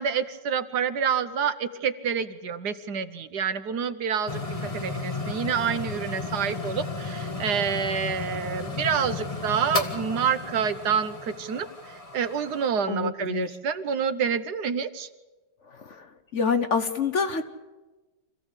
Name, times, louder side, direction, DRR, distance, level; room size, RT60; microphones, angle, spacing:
voice 1, 0.0-15.1, right 7 dB, 70° right, 11 dB, 1.5 m, -28 dB
sound 1, 4.3-12.7, left 3 dB, 20° left, 1.7 m, -33 dB
voice 2, 12.9-13.5 15.7-16.1 16.3-17.4, left 5 dB, 50° left, 9 dB, 1.2 m, -26 dB
26.5 x 15.5 x 8.2 m, 1.2 s
omnidirectional pair, 1.9 m